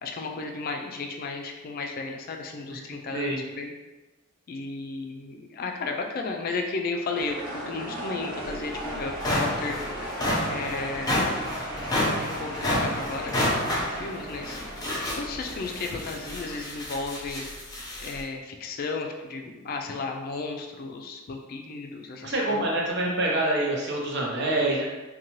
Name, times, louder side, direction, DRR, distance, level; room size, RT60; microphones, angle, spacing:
voice 1, 0.0-3.7 4.5-9.8 10.5-11.3 12.4-13.4 13.8-14.6 15.1-17.5 18.0-22.7, left 3 dB, 45° left, 3 dB, 0.3 m, -34 dB
sound 1, 7.2-16.6, right 1 dB, 80° right, 1.2 m, -37 dB
sound 2, 8.5-8.6 9.0-18.2, left 1 dB, 20° left, 0.6 m, -29 dB
voice 2, 22.2-24.9, right 1 dB, 55° right, -2 dB, 0.6 m, -26 dB
2.7 x 2.2 x 2.9 m, 1.1 s
head